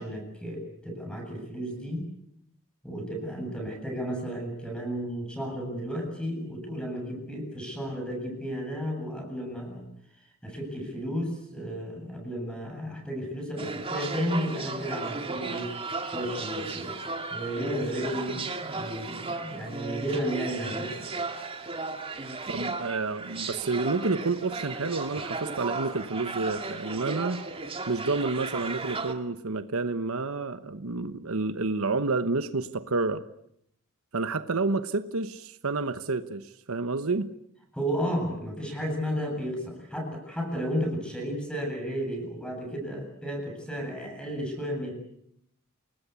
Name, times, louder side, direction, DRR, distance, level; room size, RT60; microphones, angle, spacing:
voice 1, 0.0-2.1 2.8-9.9 10.2-15.7 16.0-16.9 17.3-21.3 37.7-44.9, equal, 5° left, 2 dB, 8.0 m, -33 dB
sound 1, 13.6-29.1, right 3 dB, 25° right, 2.2 m, -35 dB
voice 2, 22.5-27.4 27.9-33.2 34.1-37.3, right 3 dB, 70° right, 11 dB, 1.1 m, -29 dB
29.0 x 19.5 x 8.4 m, 0.75 s
head